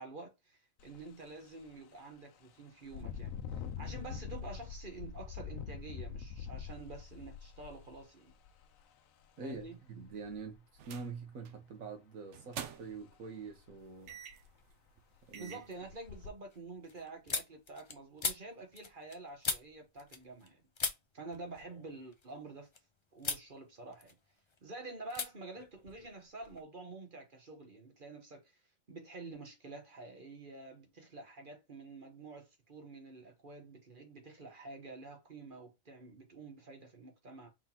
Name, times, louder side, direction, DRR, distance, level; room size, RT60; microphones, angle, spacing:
voice 1, 0.0-8.4 9.4-9.8 15.4-20.6 21.1-22.7 23.1-24.2 24.6-28.6 28.9-37.5, right 3 dB, 40° right, 1.3 m, -48 dB
Engine, 0.8-1.0 1.5-1.6 2.9-8.6 9.5-9.6 10.1-10.8 12.6-12.7 13.1-13.2 13.7-13.8 14.1-14.6 15.1-15.3 15.9-16.3, left 7 dB, 85° left, 1.1 m, -44 dB
voice 2, 9.4-14.2 15.3-15.6, right 4 dB, 90° right, 1.5 m, -45 dB
sound 1, 10.8-11.1 11.4-11.7 12.3-13.1 14.1-14.5 15.0-15.1 15.3-15.7, right 8 dB, 65° right, 0.9 m, -46 dB
sound 2, 14.5-15.1 15.4-20.5 20.8-22.8 23.2-23.5 23.9-24.6 25.1-25.3 25.6-26.6, left 4 dB, 40° left, 0.4 m, -40 dB
4.7 x 3.9 x 2.8 m
omnidirectional pair, 1.4 m